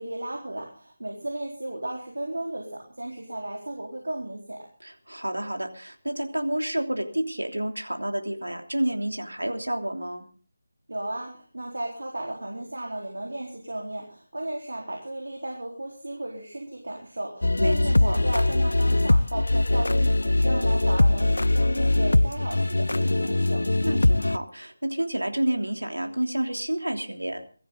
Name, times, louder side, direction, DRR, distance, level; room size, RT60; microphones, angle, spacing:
voice 1, 0.0-4.7 10.9-23.7, right 1 dB, 75° right, 1 dB, 4.1 m, -35 dB
voice 2, 4.8-10.2 17.6-18.2 23.8-27.5, right 1 dB, 90° right, 5 dB, 3.1 m, -29 dB
sound 1, 17.4-24.4, left 2 dB, 70° left, 0.6 m, -22 dB
22.5 x 14.0 x 3.9 m, 0.39 s
figure-of-eight pair, 160°, 0 cm